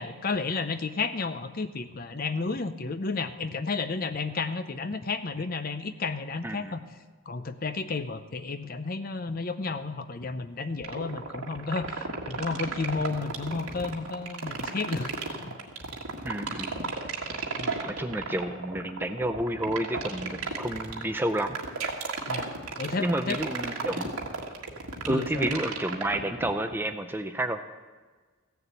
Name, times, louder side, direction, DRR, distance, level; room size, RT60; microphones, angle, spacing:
voice 1, 0.0-6.8 7.3-15.1 15.4-15.5 17.6-17.8 22.3-22.5 22.8-23.4 23.9-24.1 25.1-25.5, left 4 dB, 40° left, 11 dB, 0.6 m, -32 dB
voice 2, 6.4-6.8 16.2-16.8 17.8-21.6 23.0-24.2 25.0-27.6, right 1 dB, 10° right, 8 dB, 0.5 m, -30 dB
sound 1, 10.8-26.8, right 4 dB, 90° right, 1.7 m, -33 dB
15.5 x 7.0 x 8.2 m, 1.4 s
head